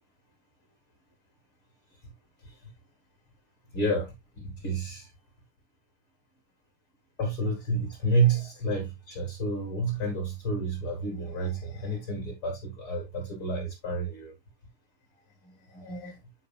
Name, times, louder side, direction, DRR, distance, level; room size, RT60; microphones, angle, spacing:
voice 1, 3.7-5.1 7.2-14.3 15.4-16.2, right 2 dB, 45° left, 1.8 m, -30 dB
9.8 x 5.0 x 2.3 m
omnidirectional pair, 5.6 m